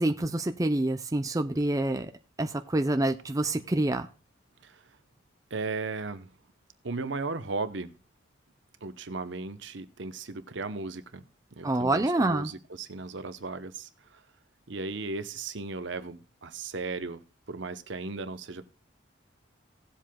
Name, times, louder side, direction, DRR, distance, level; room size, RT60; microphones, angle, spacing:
voice 1, 0.0-2.1 2.4-4.1 11.6-12.5, right 1 dB, 15° right, 7 dB, 0.5 m, -27 dB
voice 2, 5.5-6.3 6.8-7.9 8.8-11.2 11.5-14.2 14.7-17.2 17.5-18.7, right 3 dB, 65° right, 11 dB, 0.8 m, -36 dB
18.0 x 7.6 x 2.3 m, 0.36 s
head